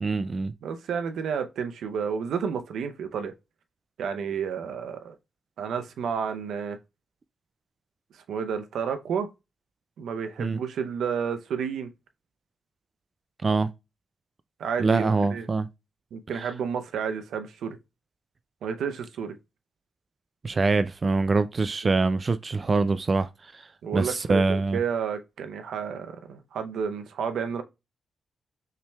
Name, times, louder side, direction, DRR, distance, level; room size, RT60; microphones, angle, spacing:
voice 1, 0.0-0.5 10.4-10.6 13.4-13.7 14.8-15.7 20.4-24.8, right 3 dB, 35° right, 0.3 m, -24 dB
voice 2, 0.6-3.3 4.0-5.2 5.6-6.8 8.3-9.3 10.0-11.9 14.6-15.5 16.1-17.8 18.6-19.3 23.8-24.4 24.7-27.6, right 7 dB, 85° right, 0.6 m, -31 dB
5.6 x 3.3 x 2.2 m
cardioid pair, 90°, 0 cm